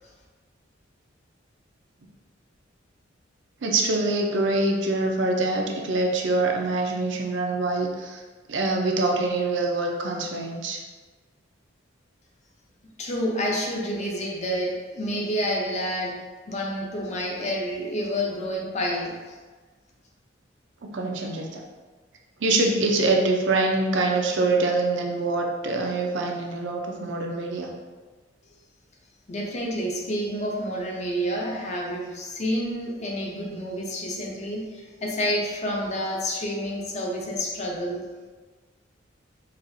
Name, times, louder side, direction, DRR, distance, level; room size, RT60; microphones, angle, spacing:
voice 1, 3.6-8.2 8.5-10.8 20.8-21.6 22.4-27.7, right 2 dB, 70° right, 1 dB, 0.5 m, -24 dB
voice 2, 13.0-19.4 29.3-38.0, equal, 35° left, -1 dB, 0.6 m, -29 dB
4.1 x 2.4 x 2.6 m, 1.4 s
head